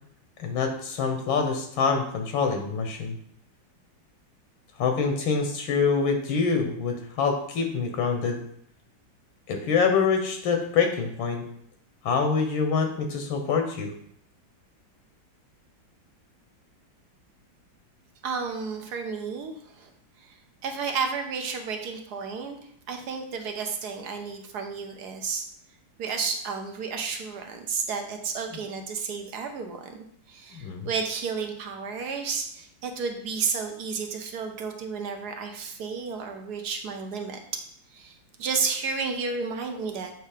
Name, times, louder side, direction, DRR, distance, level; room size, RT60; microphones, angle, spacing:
voice 1, 0.4-3.1 4.8-8.4 9.5-11.4 12.0-13.9 30.5-30.9, left 5 dB, 85° left, 4 dB, 1.6 m, -25 dB
voice 2, 18.2-19.9 20.2-20.3 20.6-22.6 22.9-25.5 26.0-30.0 30.3-37.4 37.9-40.1, right 5 dB, 60° right, 4 dB, 1.2 m, -32 dB
7.8 x 3.2 x 4.9 m, 0.67 s
omnidirectional pair, 2.1 m